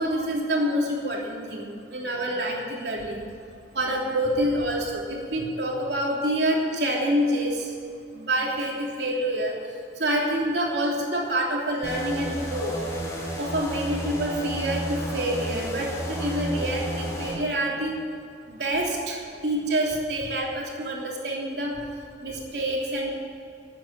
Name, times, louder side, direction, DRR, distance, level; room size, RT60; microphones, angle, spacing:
voice 1, 0.0-1.6 1.9-3.2 3.7-7.7 8.1-9.5 10.0-12.7 13.4-17.9 18.5-21.7 22.2-23.1, right 1 dB, 70° right, -2 dB, 3.2 m, -27 dB
sound 1, 11.8-17.4, equal, 20° left, 4.0 m, -32 dB
13.5 x 9.2 x 9.0 m, 2.3 s
head